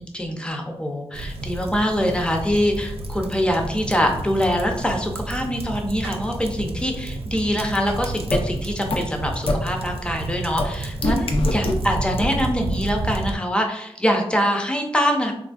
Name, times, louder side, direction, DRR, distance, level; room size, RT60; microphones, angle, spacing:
voice 1, 0.0-15.3, equal, 10° left, 2 dB, 0.5 m, -24 dB
sound 1, 1.1-13.3, right 2 dB, 65° right, 0.4 m, -31 dB
sound 2, 8.3-8.4 8.9-9.0 9.5-9.6 10.6-10.7 11.0-11.7 12.2-12.3, left 2 dB, 60° left, 0.4 m, -21 dB
3.1 x 2.5 x 2.3 m, 0.76 s
wide cardioid pair, 75°, 11 cm